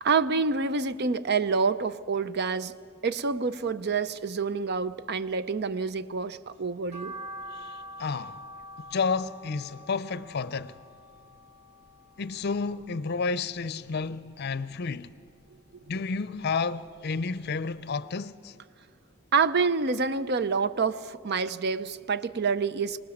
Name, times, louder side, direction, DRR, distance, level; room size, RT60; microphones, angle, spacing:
voice 1, 0.0-2.7 3.0-7.1 19.3-23.0, right 4 dB, 55° right, 0.6 m, -27 dB
sound 1, 6.9-13.2 13.6-14.7 15.1-16.5 16.9-17.0 17.4-17.5 17.8-17.9, equal, 35° right, 4.0 m, -45 dB
voice 2, 7.5-8.4 8.8-10.8 12.2-15.1 15.9-18.5, left 4 dB, 55° left, 0.6 m, -31 dB
25.5 x 19.0 x 7.2 m
head